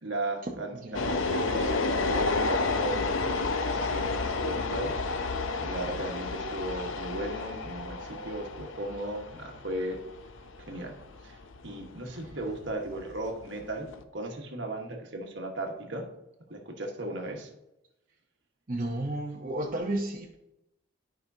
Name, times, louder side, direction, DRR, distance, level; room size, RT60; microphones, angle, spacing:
voice 1, 0.0-4.9 5.6-10.0 10.7-11.0 11.2-11.4 11.6-16.1 16.5-17.5, right 1 dB, 65° right, 2 dB, 1.4 m, -36 dB
sound 1, 0.9-14.0, left 3 dB, 75° left, 0.6 m, -31 dB
voice 2, 18.7-20.3, right 1 dB, 40° right, -2 dB, 0.8 m, -32 dB
12.0 x 5.2 x 2.8 m, 0.89 s
head